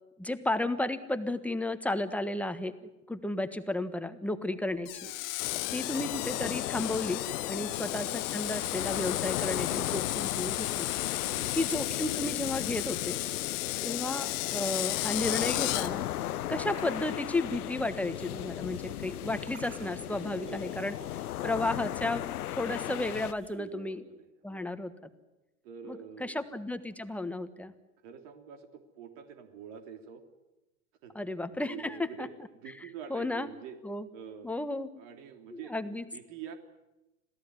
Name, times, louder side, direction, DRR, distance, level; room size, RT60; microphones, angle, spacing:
voice 1, 0.2-2.7 3.1-5.0 5.7-10.9 11.6-13.2 13.8-16.0 16.5-22.3 22.5-24.0 24.4-25.1 25.8-27.7 31.1-32.3 33.1-33.5 33.8-34.1 34.4-34.9 35.5-36.0, left 2 dB, 5° left, 10 dB, 1.4 m, -33 dB
Screech, 4.8-15.9, left 21 dB, 45° left, 1.4 m, -34 dB
voice 2, 5.0-5.7 7.5-7.7 11.1-11.6 20.3-20.7 23.5-24.6 25.6-26.4 28.0-30.2 31.0-31.1 31.7-32.3 32.6-33.8 34.1-34.5 34.9-36.6, right 8 dB, 60° right, 5 dB, 3.3 m, -46 dB
sound 1, 5.4-23.3, left 13 dB, 90° left, 0.7 m, -36 dB
sound 2, 15.1-23.6, right 7 dB, 30° right, 7.2 m, -57 dB
26.5 x 17.0 x 9.6 m, 1.0 s
hypercardioid pair, 115°, 43 cm